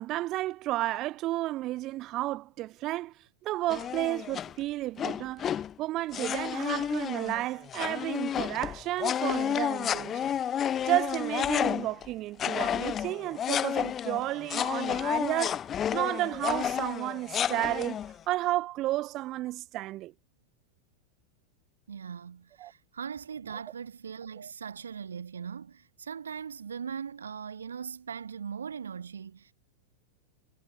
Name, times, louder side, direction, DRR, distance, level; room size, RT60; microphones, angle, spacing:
voice 1, 0.0-3.1 3.4-10.3 10.9-15.6 15.9-18.0 18.3-20.1 22.6-22.7, right 16 dB, 35° right, 0.7 m, -32 dB
sound 1, 3.7-4.5 5.0-5.7 6.1-12.1 12.4-18.1, left 9 dB, 25° left, 1.0 m, -31 dB
voice 2, 21.9-29.5, right 7 dB, 70° right, 1.3 m, -40 dB
figure-of-eight pair, 90°, 0 cm